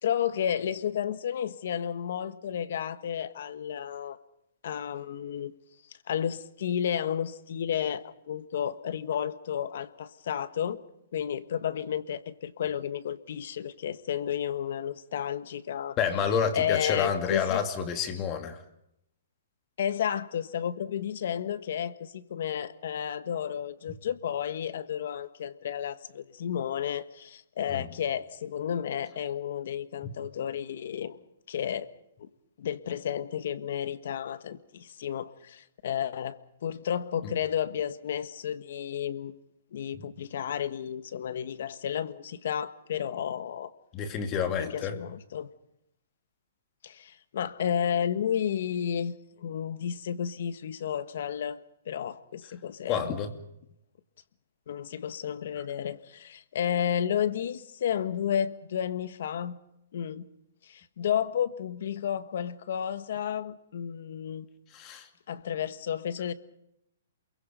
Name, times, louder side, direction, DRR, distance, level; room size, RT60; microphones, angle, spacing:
voice 1, 0.0-4.2 4.6-5.5 5.9-10.8 11.1-16.0 16.5-17.6 19.8-31.2 31.5-31.9 32.2-32.3 32.6-39.3 39.7-43.7 44.6-45.5 46.8-53.1 54.7-59.6 59.9-60.3 60.6-64.5 65.3-66.3, left 9 dB, 60° left, 1.5 m, -32 dB
voice 2, 16.0-18.6 27.7-27.9 30.0-30.1 43.9-45.0 52.9-53.3 64.7-65.1, left 7 dB, 20° left, 2.3 m, -29 dB
28.5 x 23.0 x 5.3 m
hypercardioid pair, 165°, 0 cm